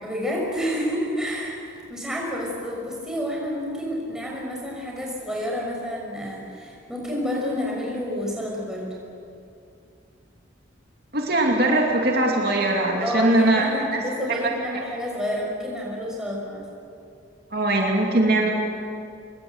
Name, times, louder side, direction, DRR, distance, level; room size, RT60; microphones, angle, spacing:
voice 1, 0.0-8.9 13.0-16.7, equal, 5° right, -3 dB, 5.7 m, -29 dB
voice 2, 11.1-13.7 14.4-14.5 17.5-18.5, right 1 dB, 50° right, 0 dB, 2.7 m, -21 dB
25.5 x 22.5 x 8.1 m, 2.5 s
head